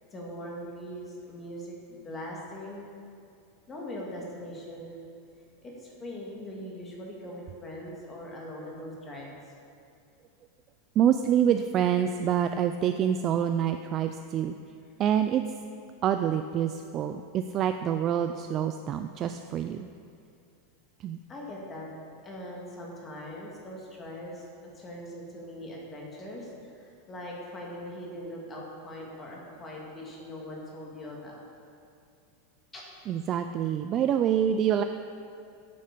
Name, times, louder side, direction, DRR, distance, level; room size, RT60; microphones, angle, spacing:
voice 1, 0.1-2.9 3.7-5.0 5.6-9.5 21.3-21.9 22.2-24.5 24.7-31.4 32.7-32.8, equal, 15° left, -2 dB, 2.1 m, -41 dB
voice 2, 11.0-14.6 15.0-15.4 16.0-19.9 21.0-21.2 33.1-34.8, right 9 dB, 30° right, 8 dB, 0.3 m, -26 dB
10.0 x 8.5 x 6.7 m, 2.5 s
supercardioid pair, 165°, 0 cm